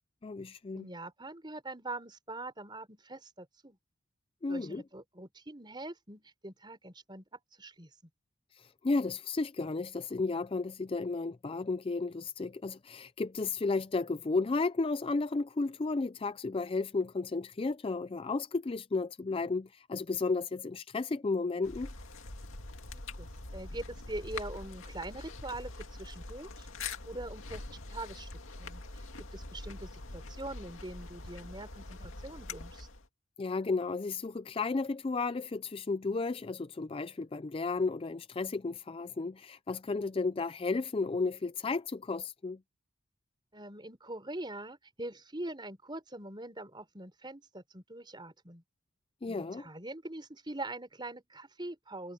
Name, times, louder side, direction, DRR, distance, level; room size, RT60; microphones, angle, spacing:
voice 1, 0.2-0.9 4.4-4.8 8.6-21.9 33.4-42.6 49.2-49.7, left 3 dB, 25° left, 0.4 m, -33 dB
voice 2, 0.7-3.8 4.5-7.9 22.9-25.7 26.0-28.3 28.6-28.8 29.2-32.9 43.5-48.6 49.2-52.1, right 2 dB, 20° right, 4.6 m, -43 dB
sound 1, 21.6-33.1, left 3 dB, 70° left, 2.3 m, -44 dB
head